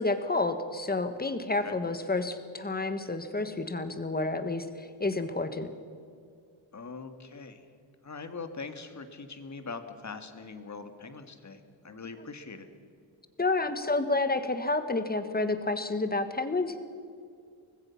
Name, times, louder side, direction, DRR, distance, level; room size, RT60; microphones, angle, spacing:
voice 1, 0.0-5.7 13.4-16.8, left 2 dB, 20° left, 9 dB, 1.5 m, -30 dB
voice 2, 6.7-7.6 8.0-12.7, left 4 dB, 35° left, 7 dB, 1.9 m, -42 dB
24.5 x 19.5 x 5.8 m, 2.3 s
wide cardioid pair, 135°, 48 cm